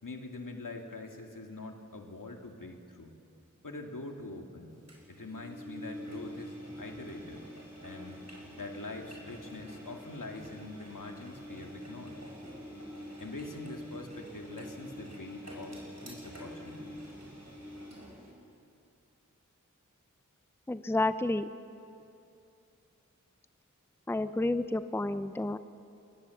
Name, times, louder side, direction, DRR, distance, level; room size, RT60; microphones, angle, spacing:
voice 1, 0.0-3.2 3.6-4.8 5.1-7.5 7.8-8.3 8.6-12.2 13.2-17.1, left 2 dB, 80° left, 3 dB, 2.2 m, -44 dB
Engine, 4.9-18.3, equal, 55° right, 5.3 m, -46 dB
voice 2, 20.7-21.5 24.1-25.6, left 2 dB, 5° left, 12 dB, 0.6 m, -30 dB
22.0 x 19.5 x 7.1 m, 2.7 s
wide cardioid pair, 50°, 32 cm